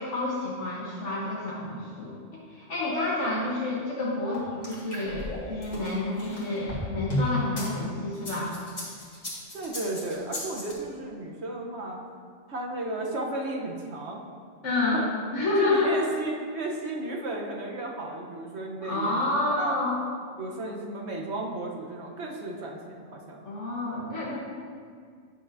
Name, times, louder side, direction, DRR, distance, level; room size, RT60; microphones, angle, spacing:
voice 1, 0.0-8.5 14.6-15.0 15.3-15.9 18.8-20.0 23.4-24.4, left 2 dB, 75° left, -6 dB, 1.4 m, -29 dB
sound 1, 4.3-7.7 8.1-10.7, left 1 dB, 35° left, 1.7 m, -33 dB
voice 2, 9.5-12.0 12.5-14.2 14.9-15.1 15.6-19.2 19.6-19.7 20.4-23.5, right 2 dB, 65° right, -1 dB, 1.2 m, -34 dB
9.9 x 6.3 x 2.6 m, 2.1 s
omnidirectional pair, 1.3 m